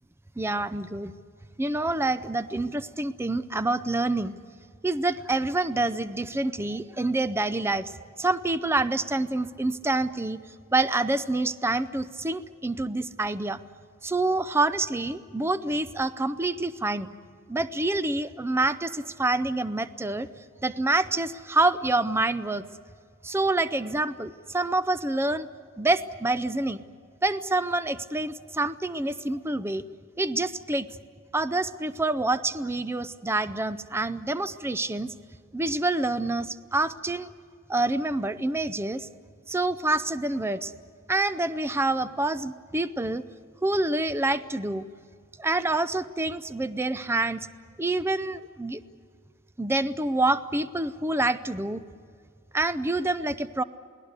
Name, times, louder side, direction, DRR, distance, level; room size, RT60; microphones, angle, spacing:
voice 1, 0.4-1.1 1.6-4.3 4.8-7.9 8.2-10.4 10.7-13.6 14.0-17.1 17.5-20.3 20.6-22.6 23.2-25.5 25.8-26.8 27.2-29.8 30.2-30.9 31.3-35.1 35.5-37.3 37.7-39.1 39.5-40.7 41.1-43.2 43.6-44.8 45.4-47.4 47.8-48.8 49.6-51.8 52.5-53.6, right 2 dB, 10° right, 13 dB, 0.5 m, -27 dB
28.5 x 19.0 x 8.2 m, 2.1 s
head